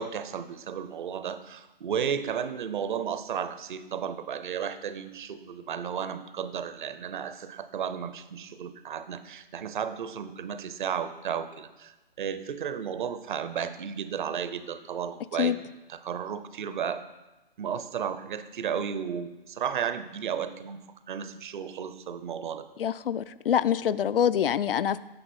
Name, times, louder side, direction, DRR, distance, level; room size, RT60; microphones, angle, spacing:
voice 1, 0.0-17.0 17.6-20.8 21.1-22.7, right 8 dB, 55° right, 11 dB, 0.8 m, -33 dB
voice 2, 22.8-25.0, left 9 dB, 65° left, 15 dB, 0.5 m, -25 dB
9.8 x 6.6 x 4.4 m, 1.1 s
figure-of-eight pair, 130°, 30 cm